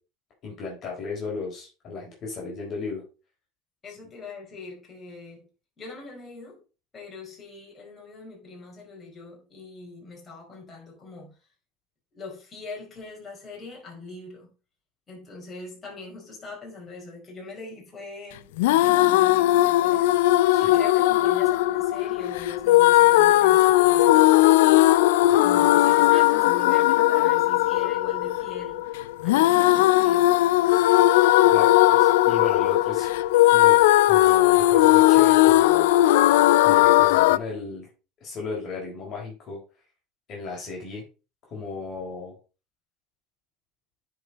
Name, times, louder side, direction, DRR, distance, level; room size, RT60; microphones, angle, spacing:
voice 1, 0.4-3.0 20.5-20.8 25.3-25.6 31.5-33.1 33.5-35.9 36.6-37.9 38.2-39.6 40.3-41.0 41.5-42.3, left 4 dB, 45° left, 4.2 m, -35 dB
voice 2, 3.8-5.5 5.8-6.6 6.9-11.3 12.1-14.5 15.1-20.1 20.6-24.2 25.4-28.8 29.2-30.3, left 3 dB, 25° left, 4.9 m, -42 dB
sound 1, 18.6-37.4, left 16 dB, 85° left, 0.3 m, -18 dB
10.0 x 5.1 x 4.1 m
supercardioid pair, 110°, 0 cm